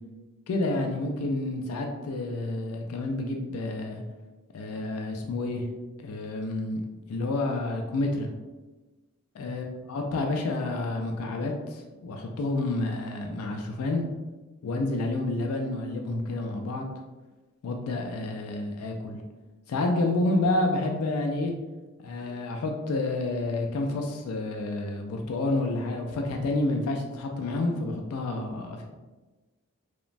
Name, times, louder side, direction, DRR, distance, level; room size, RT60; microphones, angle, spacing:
voice 1, 0.5-4.0 4.5-5.7 6.0-6.8 7.1-8.3 9.3-14.0 14.6-16.8 17.6-19.2 19.7-21.5 22.0-28.8, left 2 dB, 80° left, 2 dB, 0.3 m, -29 dB
3.0 x 2.1 x 2.5 m, 1.2 s
head